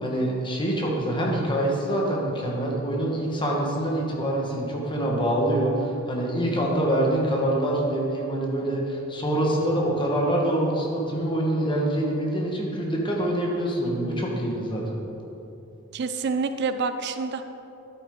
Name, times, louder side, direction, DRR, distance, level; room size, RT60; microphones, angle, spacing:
voice 1, 0.0-14.8, right 1 dB, 25° left, -2 dB, 1.6 m, -25 dB
voice 2, 15.9-17.4, right 4 dB, 55° right, 9 dB, 0.4 m, -27 dB
11.0 x 9.1 x 3.8 m, 2.9 s
head